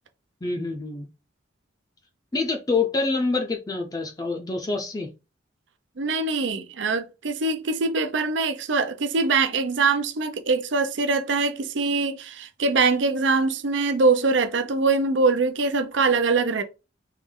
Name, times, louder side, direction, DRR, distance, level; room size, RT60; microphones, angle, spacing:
voice 1, 0.4-1.1 2.3-5.1, left 3 dB, 20° left, 0.5 m, -26 dB
voice 2, 6.0-16.6, right 4 dB, 75° right, 0.6 m, -23 dB
3.3 x 3.0 x 3.7 m
head